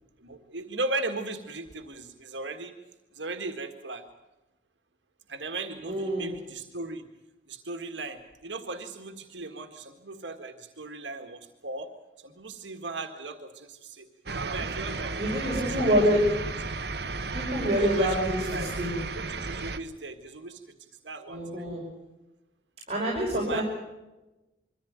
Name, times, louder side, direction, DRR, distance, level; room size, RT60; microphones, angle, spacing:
voice 1, 0.2-2.7 3.1-4.0 5.3-7.1 7.5-11.9 12.2-14.1 14.4-15.5 15.8-16.0 17.8-18.2 18.5-18.7 19.1-21.8 23.3-23.6, right 2 dB, 85° right, 6 dB, 1.8 m, -37 dB
voice 2, 5.8-6.3 15.2-16.3 17.3-18.9 21.3-21.8 22.9-23.6, equal, 35° right, -3 dB, 5.6 m, -26 dB
sound 1, 14.3-19.8, right 3 dB, 65° right, 1.1 m, -34 dB
23.0 x 15.0 x 9.3 m, 1.0 s
head